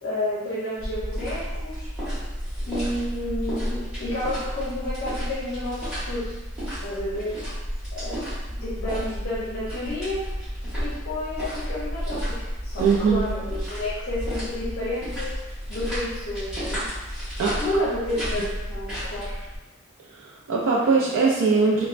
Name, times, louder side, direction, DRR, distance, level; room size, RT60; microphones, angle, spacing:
voice 1, 0.0-1.9 2.6-6.3 6.8-7.4 7.9-8.2 8.6-10.2 10.8-15.4 15.7-16.9 17.6-19.3, left 1 dB, 45° left, -9 dB, 0.6 m, -30 dB
sound 1, 0.8-19.6, equal, 5° right, 1.4 m, -32 dB
voice 2, 12.8-13.2 17.4-17.6 20.2-21.8, right 4 dB, 70° right, -3 dB, 0.4 m, -21 dB
3.1 x 2.1 x 2.4 m, 1.1 s
head